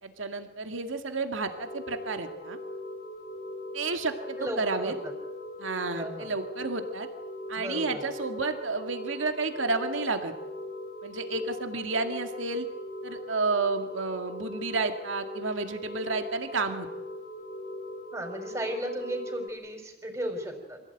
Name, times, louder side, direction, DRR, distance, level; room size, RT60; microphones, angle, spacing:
voice 1, 0.0-2.6 3.7-4.9 5.6-7.1 7.5-10.3 11.0-12.7 13.0-16.9, right 3 dB, 80° right, 6 dB, 2.2 m, -31 dB
sound 1, 1.5-19.5, left 1 dB, 35° left, 2.1 m, -40 dB
voice 2, 4.4-5.1 5.9-6.3 7.6-8.1 18.1-20.8, right 1 dB, 15° right, 3 dB, 4.7 m, -35 dB
26.0 x 16.0 x 9.2 m, 1.0 s
head